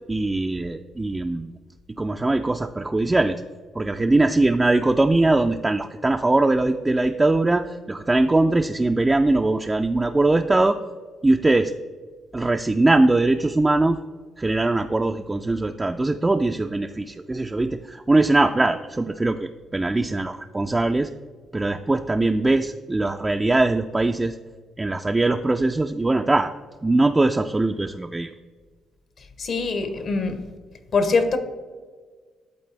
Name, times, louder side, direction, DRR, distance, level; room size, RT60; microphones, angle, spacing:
voice 1, 0.1-1.5 2.0-3.4 3.8-10.8 11.2-11.7 12.3-14.0 14.4-21.1 21.5-24.4 24.8-26.5 26.8-28.3, right 2 dB, 20° right, 5 dB, 0.3 m, -21 dB
voice 2, 29.4-30.4 30.9-31.4, left 4 dB, 55° left, 9 dB, 0.9 m, -22 dB
11.0 x 4.1 x 3.3 m, 1.5 s
cardioid pair, 90°, 0 cm